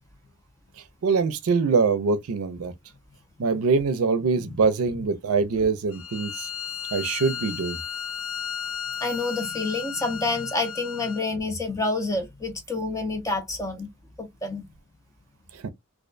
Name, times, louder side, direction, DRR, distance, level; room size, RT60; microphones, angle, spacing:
voice 1, 1.0-2.7 3.4-6.5 6.9-7.8 15.6-15.7, right 4 dB, 85° right, 0.5 m, -23 dB
Bowed string instrument, 5.9-11.3, left 8 dB, 65° left, 0.4 m, -34 dB
voice 2, 9.0-13.9 14.2-14.7, left 3 dB, 15° left, 0.7 m, -28 dB
2.4 x 2.1 x 2.4 m
head